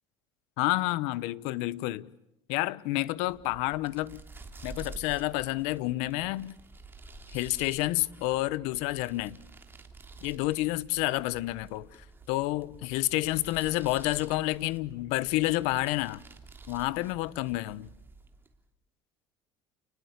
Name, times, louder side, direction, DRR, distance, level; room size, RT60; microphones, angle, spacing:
voice 1, 0.6-2.1 2.5-4.2 4.6-6.6 7.3-9.4 10.2-11.9 12.3-16.2 16.7-17.9, left 18 dB, 80° left, 1.1 m, -29 dB
sound 1, 3.1-18.6, right 3 dB, 20° right, 3.2 m, -50 dB
30.0 x 20.5 x 8.3 m
cardioid pair, 120°, 11 cm